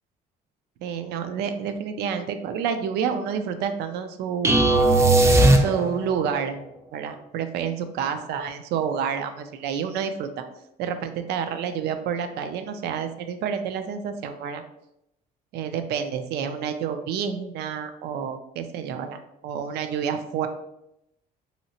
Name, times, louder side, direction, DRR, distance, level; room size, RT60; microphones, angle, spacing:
voice 1, 0.8-5.0 5.3-6.6 6.9-10.3 10.8-14.6 15.5-20.5, right 7 dB, 80° right, 9 dB, 0.4 m, -29 dB
sound 1, 4.4-6.2, right 2 dB, 15° right, 0.4 m, -17 dB
3.1 x 2.8 x 2.8 m, 0.81 s
cardioid pair, 110°, 17 cm